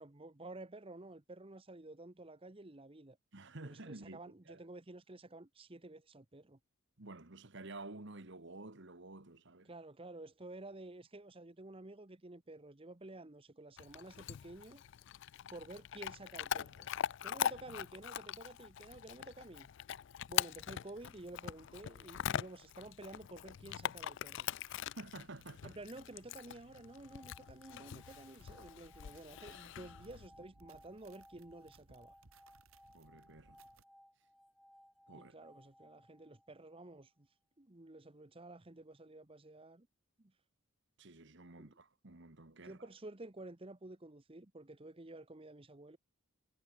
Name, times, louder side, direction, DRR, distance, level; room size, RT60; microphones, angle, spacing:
voice 1, 0.0-3.2 3.6-6.6 9.6-14.8 15.5-16.9 17.2-19.7 20.3-24.5 25.6-32.1 35.1-37.3 37.6-39.9 40.2-40.3 41.6-41.7 42.6-46.0, right 2 dB, 25° right, 1.0 m, -51 dB
voice 2, 3.3-4.2 4.5-4.6 7.0-9.7 24.7-25.8 32.9-33.6 35.1-35.4 41.0-42.8, right 2 dB, 55° right, 1.7 m, -51 dB
Chewing mastication / Dog, 13.8-30.3, left 10 dB, 60° left, 0.3 m, -42 dB
sound 1, 26.8-36.9, equal, ahead, 0.6 m, -63 dB
sound 2, 28.1-33.8, right 4 dB, 75° right, 1.6 m, -66 dB
head